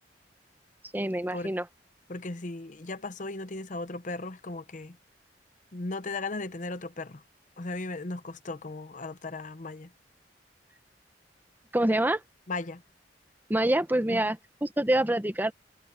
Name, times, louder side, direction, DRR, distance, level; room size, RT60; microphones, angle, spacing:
voice 1, 0.9-1.7 11.7-12.2 13.5-15.5, right 1 dB, 10° right, 0.8 m, -26 dB
voice 2, 2.1-5.0 5.7-7.2 7.6-9.9 12.5-12.8 14.1-14.2, left 2 dB, 45° left, 0.9 m, -36 dB
head